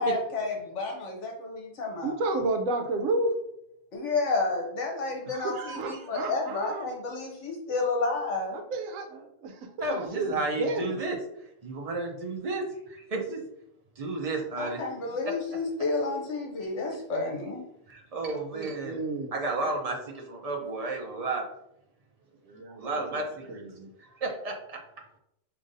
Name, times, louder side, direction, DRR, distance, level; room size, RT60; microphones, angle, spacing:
voice 1, 0.0-2.2 3.9-8.6 14.6-17.6, left 3 dB, 65° left, 1 dB, 1.0 m, -30 dB
voice 2, 2.0-3.3 5.3-6.9 8.5-11.0 18.5-19.3 22.5-23.2 23.5-23.9, right 2 dB, 80° right, 5 dB, 1.0 m, -32 dB
voice 3, 9.8-11.2 11.6-13.4 14.0-14.8 17.9-19.0 19.3-21.4 22.8-23.6 24.0-24.8, right 2 dB, 55° right, 0 dB, 0.4 m, -32 dB
5.0 x 2.7 x 2.6 m, 0.78 s
omnidirectional pair, 1.4 m